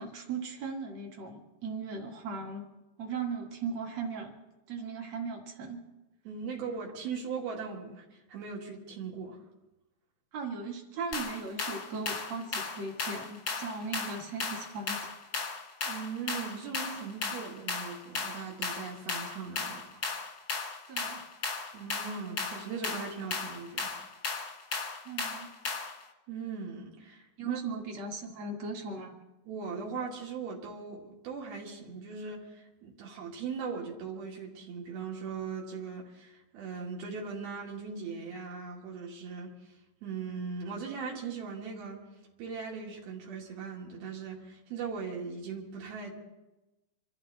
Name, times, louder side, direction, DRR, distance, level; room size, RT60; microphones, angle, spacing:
voice 1, 0.0-2.7 3.0-4.3 4.7-5.8 10.3-15.0 20.9-21.2 25.0-25.5 27.4-29.1, right 4 dB, 50° right, 1 dB, 2.8 m, -38 dB
voice 2, 6.3-9.4 15.8-19.8 21.7-23.9 26.3-27.6 29.5-39.5 40.0-42.0 42.4-46.1, right 5 dB, 80° right, -2 dB, 4.0 m, -39 dB
sound 1, 11.1-26.0, left 4 dB, 50° left, 1.3 m, -36 dB
26.5 x 13.0 x 4.1 m, 1.0 s
omnidirectional pair, 4.3 m